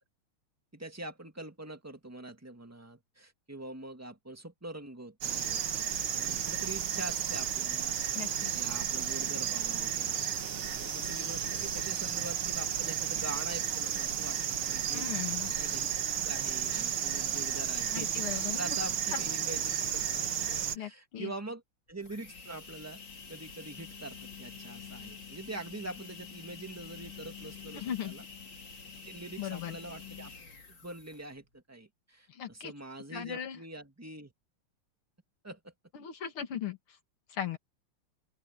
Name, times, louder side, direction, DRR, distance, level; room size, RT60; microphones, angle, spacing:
voice 1, 0.7-5.6 6.1-10.3 10.7-15.9 16.2-21.6 21.9-23.0 23.3-28.2 29.1-30.3 30.7-34.3 35.4-35.7, right 2 dB, 5° right, 2.0 m, -44 dB
sound 1, 5.2-20.8, right 9 dB, 75° right, 2.4 m, -33 dB
voice 2, 8.1-8.5 14.9-15.5 17.9-18.8 19.1-19.2 20.7-21.3 27.7-28.2 29.4-29.8 32.3-32.7 33.1-33.6 35.9-36.8 37.3-37.6, left 9 dB, 75° left, 2.8 m, -38 dB
sound 2, 21.9-31.4, left 6 dB, 55° left, 4.1 m, -47 dB
open air
omnidirectional pair, 2.4 m